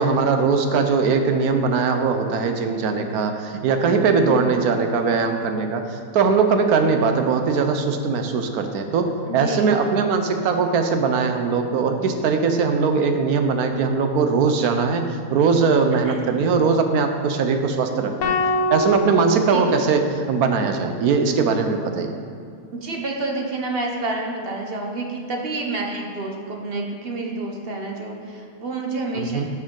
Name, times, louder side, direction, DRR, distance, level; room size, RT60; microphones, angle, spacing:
voice 1, 0.0-18.4 18.7-22.1 29.1-29.5, right 5 dB, 80° right, 6 dB, 1.2 m, -20 dB
voice 2, 4.1-4.4 9.3-9.9 16.0-16.3 19.5-19.6 22.7-29.4, right 2 dB, 45° right, 1 dB, 1.0 m, -29 dB
sound 1, 18.2-20.5, left 1 dB, 80° left, 1.3 m, -24 dB
11.0 x 6.2 x 3.8 m, 2.3 s
omnidirectional pair, 1.6 m